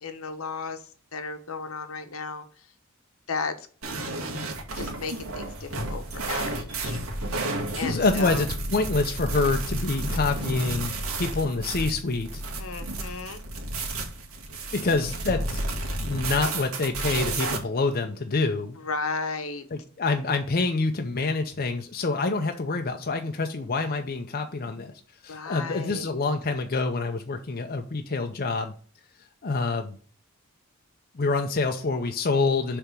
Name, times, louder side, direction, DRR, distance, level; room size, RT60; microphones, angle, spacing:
voice 1, 0.0-2.7 3.3-3.7 4.7-8.5 12.6-13.4 18.8-19.7 25.3-26.1, left 4 dB, 75° left, 1.1 m, -35 dB
sound 1, 3.8-17.6, right 2 dB, 75° right, 1.7 m, -31 dB
voice 2, 7.8-12.4 14.7-15.6 16.0-18.8 19.7-24.9 25.2-28.7 29.4-30.0 31.1-32.8, left 3 dB, 45° left, 0.6 m, -26 dB
6.6 x 3.5 x 6.1 m
head